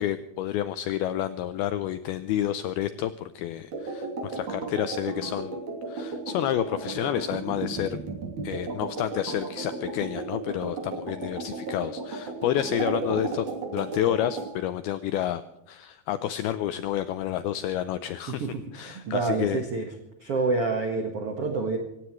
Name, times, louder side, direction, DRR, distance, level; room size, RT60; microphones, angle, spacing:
voice 1, 0.0-5.6 5.9-8.0 8.4-13.5 13.7-18.5 18.7-19.6, left 11 dB, 85° left, 12 dB, 2.2 m, -29 dB
sound 1, 3.7-14.5, right 3 dB, 45° right, 4.1 m, -34 dB
voice 2, 18.4-19.9 20.2-21.8, right 3 dB, 70° right, 4 dB, 1.4 m, -28 dB
26.5 x 16.0 x 3.2 m, 0.87 s
omnidirectional pair, 5.2 m